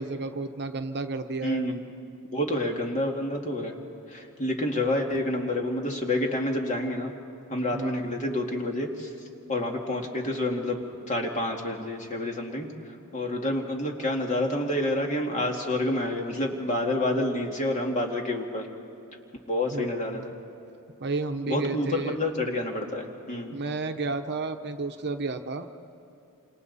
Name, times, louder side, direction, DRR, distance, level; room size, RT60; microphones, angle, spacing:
voice 1, 0.0-1.7 7.7-8.2 19.7-20.3 21.0-22.2 23.5-25.7, right 3 dB, 50° right, 7 dB, 1.0 m, -32 dB
voice 2, 1.4-1.8 2.3-3.8 4.1-7.1 7.5-9.1 9.5-10.8 11.1-18.7 19.5-20.3 21.5-23.6, left 1 dB, 35° left, 1 dB, 2.2 m, -28 dB
28.0 x 26.5 x 4.2 m, 2.7 s
head